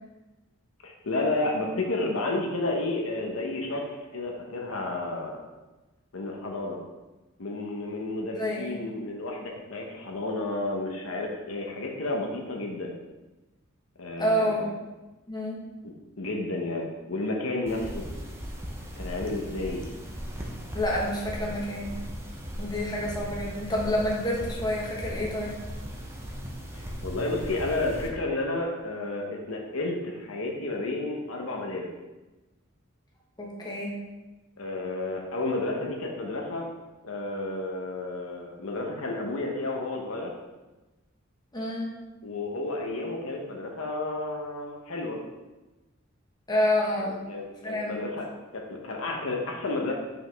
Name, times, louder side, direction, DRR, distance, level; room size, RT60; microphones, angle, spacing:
voice 1, 0.8-3.8 4.1-5.4 6.1-6.8 7.4-12.9 14.0-14.7 15.8-18.0 19.0-19.8 21.3-21.4 26.7-31.9 34.6-36.7 37.0-40.3 42.2-45.2 46.9-48.2 48.5-49.9, left 2 dB, 75° left, 0 dB, 0.9 m, -31 dB
voice 2, 8.4-8.8 14.2-14.7 15.3-15.6 20.7-22.0 22.6-25.6 33.4-34.0 41.5-42.0 46.5-47.3 47.6-48.0, left 1 dB, 20° left, -4 dB, 1.3 m, -28 dB
sound 1, 17.7-28.1, equal, 10° right, 0.7 m, -38 dB
5.8 x 5.1 x 3.4 m, 1.1 s
head